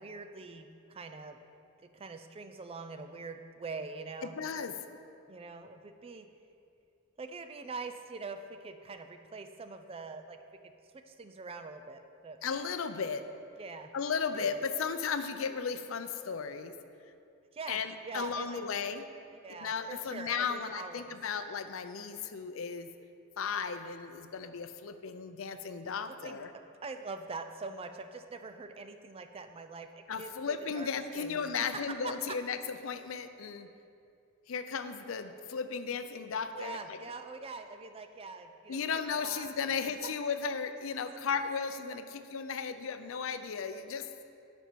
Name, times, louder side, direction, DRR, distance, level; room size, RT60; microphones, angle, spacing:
voice 1, 0.0-1.4 1.8-4.4 5.3-6.3 7.2-10.4 10.6-10.7 11.1-12.4 13.6-13.9 14.3-14.5 17.5-17.8 18.0-18.6 19.4-21.2 26.2-26.4 26.8-30.9 31.1-31.4 31.7-32.4 36.6-38.8 39.2-39.5, right 4 dB, 30° right, 8 dB, 0.4 m, -43 dB
voice 2, 4.2-4.8 12.4-13.2 13.9-16.7 17.7-19.0 19.6-22.9 23.4-26.5 30.1-33.7 34.5-37.0 38.7-44.1, left 6 dB, 70° left, 10 dB, 0.5 m, -35 dB
11.5 x 5.3 x 4.6 m, 2.5 s
head